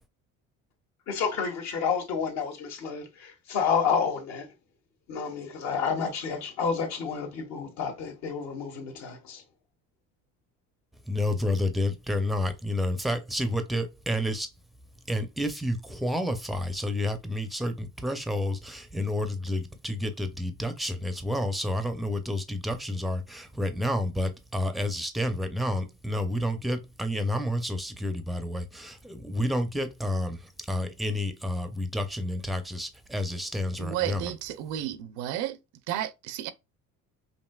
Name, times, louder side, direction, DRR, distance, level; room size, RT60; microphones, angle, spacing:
voice 1, 1.1-4.5 5.1-9.4, left 6 dB, 65° left, 1.4 m, -30 dB
voice 2, 11.1-14.5 15.1-34.3, left 1 dB, ahead, 0.5 m, -30 dB
voice 3, 33.8-35.6 35.9-36.5, right 12 dB, 80° right, 0.6 m, -32 dB
5.2 x 2.8 x 2.3 m
cardioid pair, 130°, 30 cm